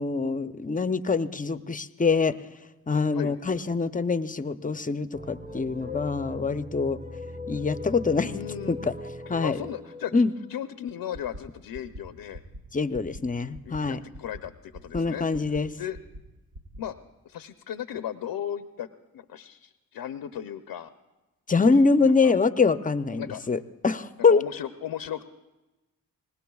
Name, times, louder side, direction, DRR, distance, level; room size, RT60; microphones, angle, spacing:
voice 1, 0.0-2.4 2.9-7.0 7.5-8.3 8.7-8.9 9.3-9.6 10.1-10.3 12.7-14.0 14.9-15.7 21.5-24.4, left 4 dB, 20° left, 12 dB, 0.6 m, -24 dB
sound 1, 5.1-11.3, left 2 dB, 25° right, 1.2 m, -39 dB
voice 2, 8.2-8.8 9.3-10.2 10.5-12.4 13.6-15.2 15.8-16.0 16.8-16.9 17.2-20.9 21.6-22.3 23.2-23.5 24.3-25.2, left 10 dB, 75° left, 10 dB, 0.7 m, -36 dB
sound 2, 11.1-11.4 11.7-12.0 12.3-12.6 12.9-13.2 13.5-13.8 14.1-14.4 14.7-15.0 15.3-15.6 15.9-16.2 16.5-16.8, equal, 70° right, 1.6 m, -42 dB
25.0 x 20.0 x 2.4 m, 1.1 s
cardioid pair, 50°, 38 cm